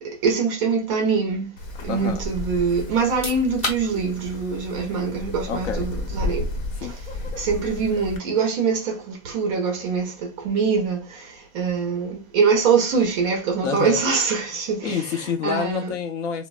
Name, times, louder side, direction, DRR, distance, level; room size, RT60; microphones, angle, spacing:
voice 1, 0.0-1.5 1.8-6.5 6.8-7.0 7.4-15.0 15.4-15.9, right 5 dB, 25° right, 0.4 m, -23 dB
Wind, 1.6-8.2, left 2 dB, 85° left, 0.9 m, -33 dB
voice 2, 1.9-2.2 5.5-5.9 6.8-6.9 13.6-14.0 14.8-16.5, left 7 dB, 65° left, 0.7 m, -28 dB
sound 1, 3.0-15.6, left 1 dB, 15° left, 0.7 m, -42 dB
3.0 x 2.0 x 2.2 m
supercardioid pair, 155°, 39 cm